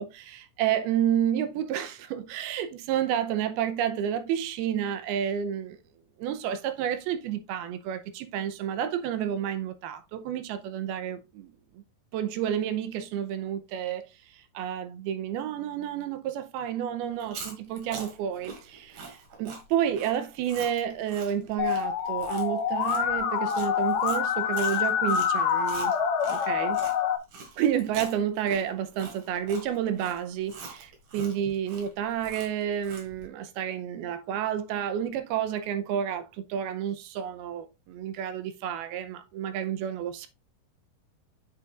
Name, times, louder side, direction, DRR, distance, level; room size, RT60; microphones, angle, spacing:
voice 1, 0.0-5.8 6.2-11.8 12.1-14.1 14.3-25.9 26.3-26.8 27.6-40.3, right 9 dB, 85° right, 2.7 m, -30 dB
Chewing mastication, 17.1-27.0 27.3-33.2, right 4 dB, 55° right, 3.2 m, -43 dB
Musical instrument, 21.6-27.2, left 8 dB, 80° left, 1.6 m, -26 dB
8.2 x 6.9 x 2.5 m
omnidirectional pair, 4.5 m